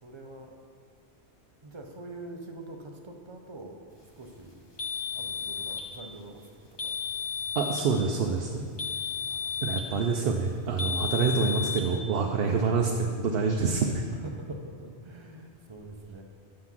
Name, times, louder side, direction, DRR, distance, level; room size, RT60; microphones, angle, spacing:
voice 1, 0.0-0.6 1.6-3.8 4.2-4.6 5.1-6.4 6.8-6.9 9.3-9.5 14.1-16.2, right 2 dB, 30° right, 3 dB, 0.6 m, -44 dB
sound 1, 4.8-5.9 6.8-7.9 8.8-9.9 10.8-11.9, left 6 dB, 25° left, 0.9 m, -33 dB
voice 2, 7.6-8.6 9.6-14.0, right 5 dB, 65° right, 2 dB, 0.8 m, -26 dB
7.5 x 5.7 x 6.0 m, 2.1 s
omnidirectional pair, 1.1 m